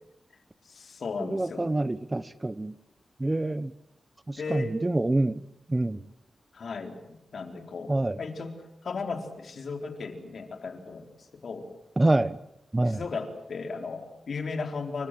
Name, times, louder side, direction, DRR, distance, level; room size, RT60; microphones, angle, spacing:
voice 1, 0.7-1.7 4.4-4.7 6.5-8.6 8.8-11.1 11.4-11.7 12.8-15.1, left 4 dB, 70° left, 5 dB, 4.0 m, -35 dB
voice 2, 1.2-2.7 3.2-3.7 4.3-5.4 5.7-6.0 7.9-8.2 12.0-12.4 12.7-13.0, right 2 dB, 20° right, 16 dB, 1.0 m, -26 dB
28.5 x 24.5 x 7.8 m, 0.81 s
cardioid pair, 80°, 0 cm